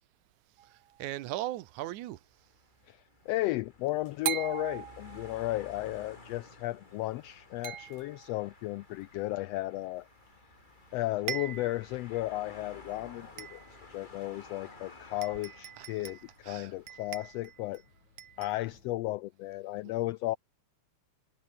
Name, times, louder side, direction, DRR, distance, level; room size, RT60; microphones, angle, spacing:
sound 1, 0.6-1.1 4.3-5.6 7.6-8.4 10.5-10.6 10.9-11.0 11.3-11.9 12.4-12.5 13.4-13.9 14.8-14.9 15.2-16.4 16.9-17.8 18.2-18.7, right 11 dB, 70° right, 2.6 m, -40 dB
voice 1, 0.6-2.2 15.8-16.1 16.4-16.8, right 15 dB, 85° right, 2.3 m, -38 dB
sound 2, 2.3-17.7, left 3 dB, 15° left, 2.1 m, -54 dB
voice 2, 2.9-10.1 10.9-13.6 13.9-17.8 18.4-20.4, left 17 dB, 85° left, 1.4 m, -34 dB
sound 3, 3.2-19.1, left 4 dB, 70° left, 7.7 m, -66 dB
omnidirectional pair, 3.4 m